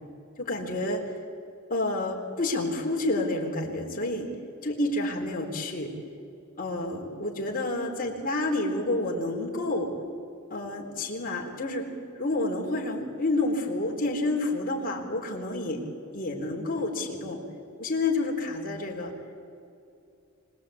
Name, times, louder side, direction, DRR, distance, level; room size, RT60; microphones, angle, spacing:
voice 1, 0.4-1.1 1.7-4.3 4.6-5.9 6.6-9.9 10.5-11.9 12.2-15.8 16.1-17.4 17.8-19.1, left 2 dB, 40° left, 0 dB, 3.8 m, -29 dB
25.5 x 19.5 x 8.6 m, 2.6 s
head